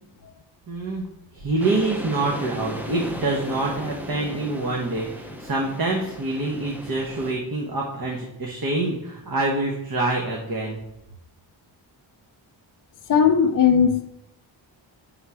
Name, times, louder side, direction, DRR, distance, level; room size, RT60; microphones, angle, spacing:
voice 1, 0.7-1.1 1.3-10.8, right 2 dB, 50° right, 1.0 m, -26 dB
sound 1, 1.6-7.3, left 1 dB, 5° right, 0.6 m, -36 dB
voice 2, 13.1-14.1, left 7 dB, 45° left, 0.5 m, -17 dB
5.6 x 3.7 x 4.7 m
wide cardioid pair, 135°, 47 cm